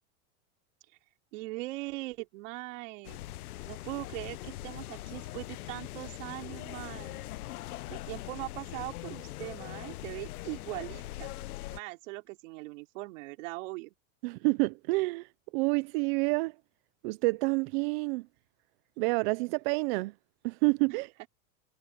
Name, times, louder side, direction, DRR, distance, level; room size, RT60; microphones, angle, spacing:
voice 1, 1.3-3.2 3.7-7.3 7.9-11.3 11.7-13.9 20.9-21.0, right 22 dB, 60° right, 3.1 m, -40 dB
sound 1, 3.0-11.8, left 16 dB, 85° left, 1.0 m, -41 dB
voice 2, 14.2-15.3 15.5-16.5 17.0-18.3 19.0-20.1 20.4-21.1, right 27 dB, 45° right, 0.5 m, -28 dB
supercardioid pair, 150°, 43 cm